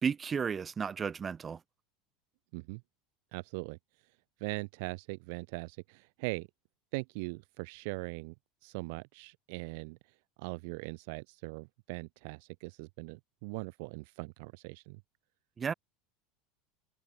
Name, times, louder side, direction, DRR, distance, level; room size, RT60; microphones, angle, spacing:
voice 1, 0.0-1.6 15.6-15.7, right 6 dB, 25° right, 1.2 m, -33 dB
voice 2, 3.3-3.8 4.4-6.5 6.9-8.3 8.6-10.0 10.4-15.0, right 29 dB, 70° right, 7.2 m, -40 dB
hypercardioid pair, 95°, 0 cm